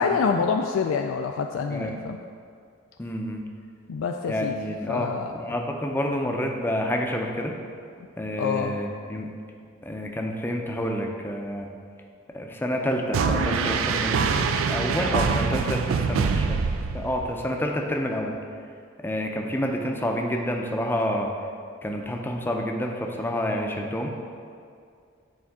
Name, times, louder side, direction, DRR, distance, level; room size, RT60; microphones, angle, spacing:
voice 1, 0.0-2.2 3.9-4.5 4.9-5.3 8.4-8.8, left 5 dB, 80° left, 4 dB, 0.3 m, -26 dB
voice 2, 3.0-3.4 4.3-7.5 8.2-9.3 9.8-11.7 12.3-14.2 14.7-15.8 16.1-16.6 16.9-18.4 19.0-21.3 21.8-24.1, equal, 10° left, 1 dB, 0.5 m, -28 dB
sound 1, 13.1-17.4, right 5 dB, 85° right, 0.4 m, -24 dB
8.7 x 3.7 x 3.5 m, 2.3 s
head